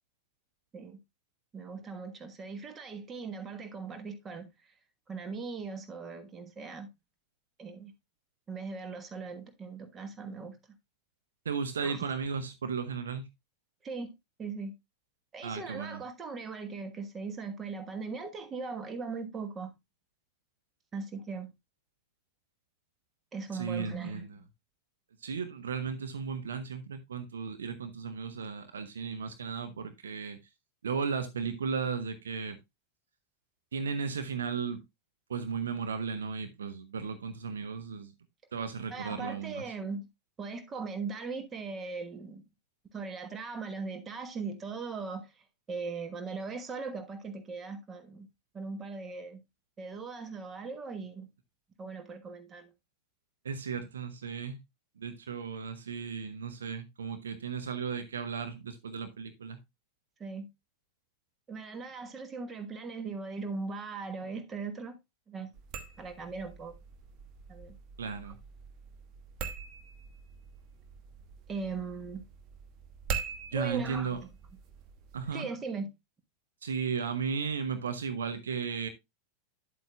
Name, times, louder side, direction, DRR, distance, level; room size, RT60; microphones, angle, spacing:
voice 1, 1.5-4.5 5.1-6.9 7.6-7.9 8.5-10.5 11.8-12.1 13.8-14.1 14.4-14.7 15.3-19.7 20.9-21.5 23.3-24.5 38.9-40.1 40.4-42.4 42.9-45.3 45.7-48.3 48.5-49.4 49.8-51.3 51.8-52.7 60.2-60.5 61.5-65.0 65.3-65.5 66.0-66.7 67.5-67.8 71.5-72.2 73.5-74.2 75.3-75.9, right 4 dB, 20° right, 1.3 m, -39 dB
voice 2, 11.4-13.3 15.4-16.0 23.5-24.4 25.2-30.4 30.8-32.6 33.7-34.8 35.3-38.1 38.5-39.6 53.4-54.6 55.0-59.6 68.0-68.4 73.5-74.2 75.1-75.5 76.6-78.9, right 6 dB, 65° right, 0.8 m, -35 dB
sound 1, 65.5-75.3, right 6 dB, 35° right, 1.1 m, -43 dB
9.6 x 7.8 x 2.3 m
figure-of-eight pair, 90°, 0 cm